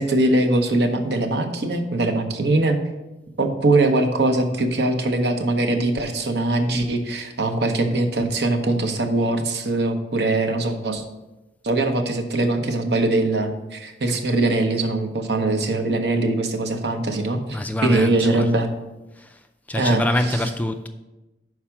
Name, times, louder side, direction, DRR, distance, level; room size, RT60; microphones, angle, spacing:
voice 1, 0.0-2.8 3.4-11.0 11.6-18.7 19.8-20.0 20.3-20.4, right 2 dB, 70° right, 5 dB, 0.8 m, -22 dB
voice 2, 17.5-18.5 19.2-19.4 19.7-20.9, left 1 dB, 10° left, 7 dB, 0.3 m, -25 dB
5.7 x 4.7 x 5.8 m, 1.0 s
head